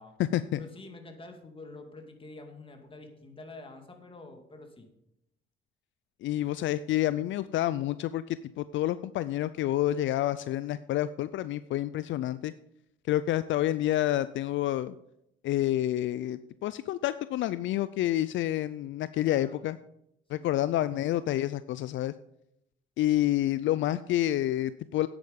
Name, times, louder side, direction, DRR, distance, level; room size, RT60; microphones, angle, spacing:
voice 1, 0.6-4.9 19.2-19.6 20.4-21.0, left 2 dB, 25° left, 4 dB, 2.3 m, -47 dB
voice 2, 6.2-12.5 13.1-14.9 15.4-19.8 20.3-22.1 23.0-25.1, left 13 dB, 70° left, 15 dB, 0.4 m, -28 dB
9.7 x 8.8 x 5.2 m, 0.81 s
cardioid pair, 90°, 20 cm